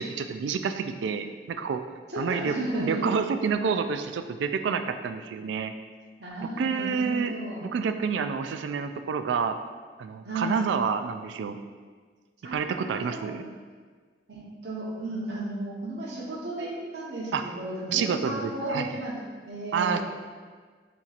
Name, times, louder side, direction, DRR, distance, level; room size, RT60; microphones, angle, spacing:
voice 1, 0.0-1.8 2.2-2.5 2.8-5.7 6.6-7.3 7.6-9.6 10.0-11.6 12.5-13.5 17.3-17.4 17.9-18.9 19.7-20.0, right 6 dB, 85° right, 9 dB, 0.3 m, -28 dB
voice 2, 2.1-3.1 6.2-7.7 10.2-10.6 12.4-13.3 14.3-19.1 19.5-20.0, right 1 dB, 70° right, -5 dB, 0.9 m, -34 dB
6.8 x 3.0 x 2.4 m, 1.5 s
head